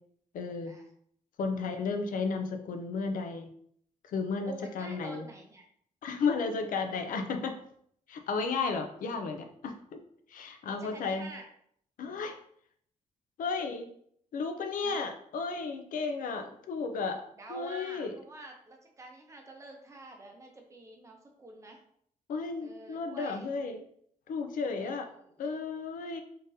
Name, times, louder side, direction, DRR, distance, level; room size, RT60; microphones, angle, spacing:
voice 1, 0.3-0.7 1.4-3.5 4.0-5.3 6.0-7.6 8.1-10.0 10.3-11.3 12.0-12.4 13.4-13.9 14.3-18.1 22.3-23.8 24.3-25.1 25.4-26.2, left 4 dB, 85° left, 6 dB, 0.5 m, -33 dB
voice 2, 4.4-5.7 10.8-11.5 14.8-15.0 17.4-21.8 22.6-23.5 24.8-25.6, right 2 dB, 20° right, 2 dB, 0.7 m, -48 dB
3.9 x 3.8 x 2.6 m, 0.65 s
wide cardioid pair, 175°, 14 cm